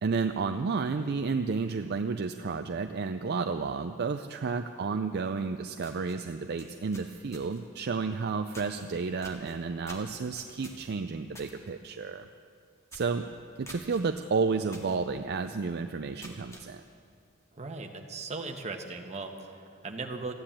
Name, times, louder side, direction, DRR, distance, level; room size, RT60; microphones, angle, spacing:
voice 1, 0.0-12.3 12.9-13.3 13.6-16.8, right 4 dB, 50° right, 7 dB, 0.5 m, -31 dB
sound 1, 5.4-5.5 5.8-7.7 8.5-8.9 9.2-11.6 11.9-12.2 12.4-12.5 12.9-13.2 13.7-14.0 14.7-15.0 15.4-15.5 16.0-16.7, equal, 15° left, 2.0 m, -49 dB
voice 2, 17.6-20.3, right 3 dB, 35° right, 4 dB, 1.2 m, -38 dB
14.5 x 9.9 x 8.7 m, 2.5 s
head